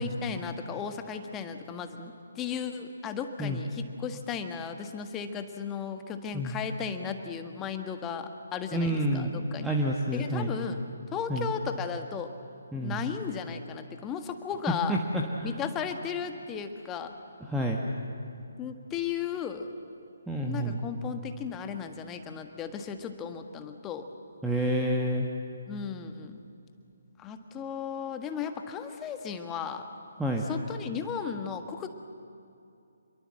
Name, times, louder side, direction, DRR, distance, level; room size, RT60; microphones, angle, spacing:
voice 1, 0.0-9.7 10.1-10.8 11.1-12.3 12.8-15.0 15.4-17.1 18.6-19.7 20.4-24.1 25.7-26.4 27.2-29.9 30.4-31.9, left 7 dB, 15° left, 7 dB, 1.5 m, -35 dB
voice 2, 8.7-10.5 11.3-11.5 12.7-13.0 14.9-15.5 17.5-17.8 20.3-20.8 24.4-25.3 30.2-30.4, equal, 5° right, -2 dB, 1.4 m, -29 dB
27.5 x 22.5 x 7.7 m, 2.6 s
figure-of-eight pair, 140°, 0 cm